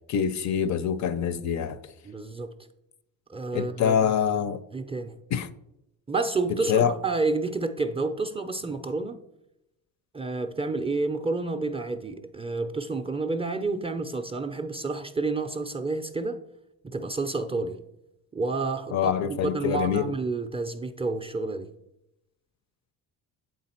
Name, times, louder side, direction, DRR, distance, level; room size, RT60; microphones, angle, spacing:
voice 1, 0.1-1.8 3.5-4.6 5.3-5.5 6.7-7.0 18.9-20.1, left 8 dB, 50° left, 0.5 m, -25 dB
voice 2, 2.0-2.5 3.3-4.1 4.7-5.2 6.1-9.2 10.1-16.4 16.8-17.8 18.3-21.7, right 3 dB, 15° right, 0.4 m, -29 dB
8.7 x 3.7 x 4.3 m
cardioid pair, 95°, 38 cm